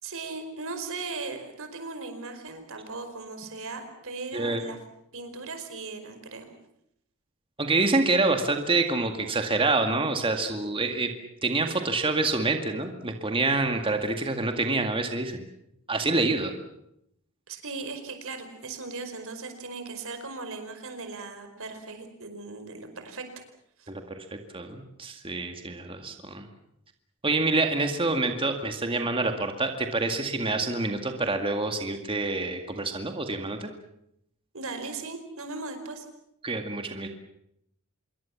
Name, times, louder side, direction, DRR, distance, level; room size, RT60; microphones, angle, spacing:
voice 1, 0.0-4.8 5.1-6.4 17.5-23.2 23.8-23.9 34.5-36.0, right 3 dB, 65° right, 7 dB, 5.0 m, -38 dB
voice 2, 7.6-11.1 11.4-15.4 15.9-16.5 23.9-24.0 24.3-26.4 27.2-33.7 36.4-37.1, right 3 dB, 25° right, 5 dB, 2.1 m, -27 dB
26.5 x 22.5 x 7.3 m, 0.77 s
head